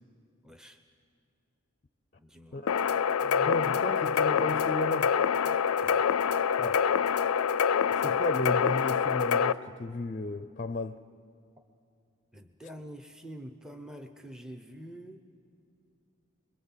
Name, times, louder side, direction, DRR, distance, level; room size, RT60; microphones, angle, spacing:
voice 1, 0.4-0.8 2.2-2.6 5.8-6.0 12.3-15.2, equal, 5° right, 0.7 m, -46 dB
sound 1, 2.7-9.5, left 7 dB, 90° left, 0.5 m, -26 dB
voice 2, 3.2-5.2 6.6-6.8 7.9-11.0, left 2 dB, 35° left, 0.5 m, -33 dB
27.0 x 22.0 x 7.3 m
head